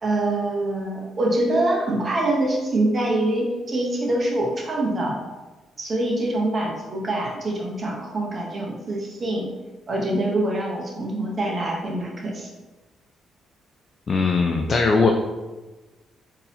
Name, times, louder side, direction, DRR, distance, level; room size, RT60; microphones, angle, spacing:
voice 1, 0.0-5.2 5.8-9.5 9.9-12.5, right 1 dB, 40° right, -2 dB, 0.8 m, -24 dB
voice 2, 14.1-15.1, left 4 dB, 45° left, 2 dB, 0.3 m, -19 dB
3.8 x 2.7 x 2.7 m, 1.2 s
cardioid pair, 90°, 0 cm